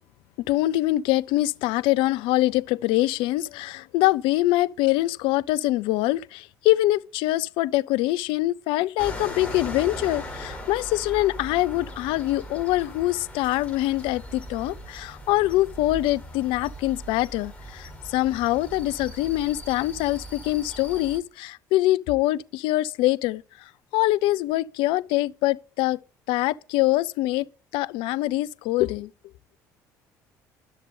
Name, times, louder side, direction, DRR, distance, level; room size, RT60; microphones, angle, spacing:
voice 1, 0.4-26.0 26.3-27.5 27.7-29.1, left 17 dB, 65° left, 0.5 m, -24 dB
sound 1, 9.0-21.2, equal, 15° left, 4.7 m, -39 dB
11.5 x 6.6 x 5.3 m
hypercardioid pair, 55°, 9 cm